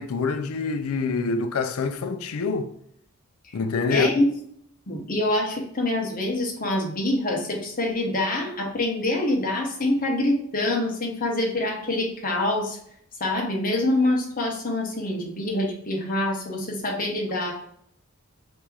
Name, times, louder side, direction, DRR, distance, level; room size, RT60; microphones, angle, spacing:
voice 1, 0.0-2.7 3.5-4.1, left 4 dB, 70° left, 0.4 m, -26 dB
voice 2, 3.9-4.3 4.9-12.8 13.2-17.5, left 1 dB, 40° left, 1.0 m, -25 dB
3.5 x 2.9 x 4.5 m
head